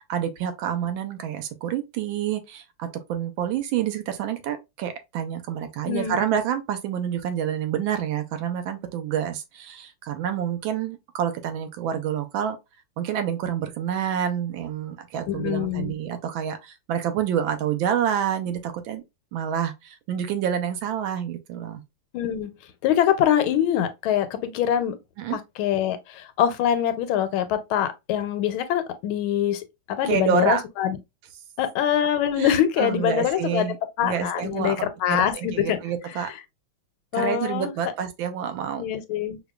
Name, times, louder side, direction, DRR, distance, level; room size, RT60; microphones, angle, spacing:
voice 1, 0.0-12.6 13.0-19.0 19.3-21.8 25.2-25.4 30.0-30.6 32.4-32.5 32.8-33.8 34.0-36.3 37.1-38.8, right 9 dB, 80° right, 1.3 m, -28 dB
voice 2, 5.8-6.2 15.3-15.9 22.1-22.5 22.8-25.0 25.3-31.0 31.6-33.7 34.0-35.8 36.2-36.3 37.1-37.7 38.8-39.4, left 10 dB, 85° left, 1.4 m, -24 dB
4.8 x 2.2 x 2.3 m
omnidirectional pair, 2.2 m